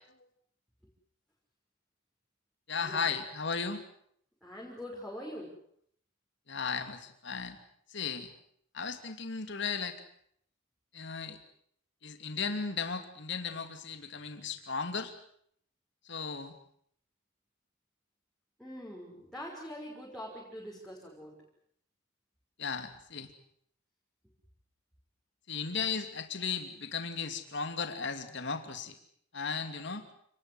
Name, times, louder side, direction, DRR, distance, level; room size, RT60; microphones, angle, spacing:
voice 1, 2.7-3.8 6.5-7.6 7.9-8.3 8.7-10.0 10.9-11.4 12.0-15.1 16.0-16.5 22.6-23.3 25.5-29.0 29.3-30.0, left 5 dB, 60° left, 7 dB, 2.8 m, -35 dB
voice 2, 4.4-5.6 18.6-21.4, equal, ahead, -4 dB, 5.9 m, -43 dB
29.0 x 20.0 x 8.1 m, 0.68 s
head